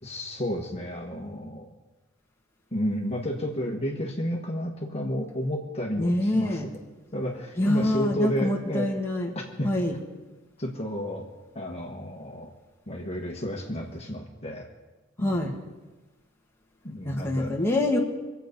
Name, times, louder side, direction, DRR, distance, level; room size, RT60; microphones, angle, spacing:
voice 1, 0.0-1.7 2.7-6.6 7.1-8.9 9.6-9.7 10.6-11.3 11.5-12.5 12.9-14.7 15.2-15.5 16.8-17.6, equal, 30° left, 0 dB, 1.5 m, -31 dB
voice 2, 6.0-6.6 7.6-9.3 9.6-9.9 15.2-15.5 17.0-18.0, left 1 dB, 10° left, -2 dB, 1.7 m, -25 dB
24.0 x 8.3 x 5.3 m, 1.2 s
head